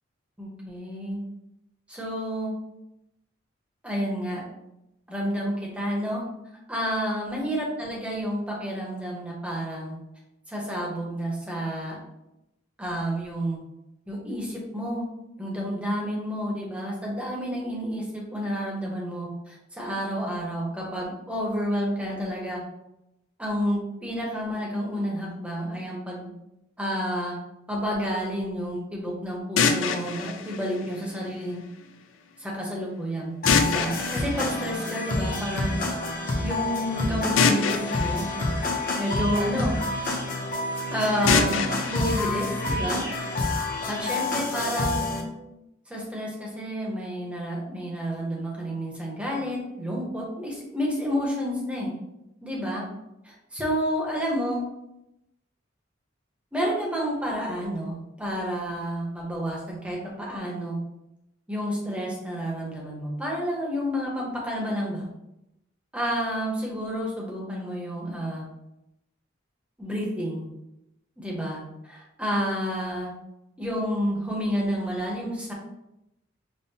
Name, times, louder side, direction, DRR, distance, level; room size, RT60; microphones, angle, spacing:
voice 1, 0.4-1.2 1.9-2.5 3.8-4.4 5.1-6.2 6.7-10.0 10.5-12.0 12.8-13.6 14.1-15.0 15.4-22.6 23.4-26.3 26.8-27.4 27.7-31.6 32.4-33.4 33.6-35.8 36.4-38.3 39.0-39.7 40.9-41.6 41.9-43.0 43.9-45.3 45.9-51.9 52.4-52.8 53.5-54.6 56.5-60.8 61.5-65.1 65.9-68.4 69.8-70.5 71.2-71.6 71.9-73.1 73.6-75.5, equal, 5° right, -3 dB, 0.8 m, -30 dB
sound 1, 29.6-31.6 33.5-35.4 37.4-39.6 41.3-43.3, left 5 dB, 80° left, 0.4 m, -27 dB
sound 2, 33.4-45.2, left 2 dB, 45° left, 0.7 m, -28 dB
5.3 x 2.1 x 2.7 m, 0.88 s
head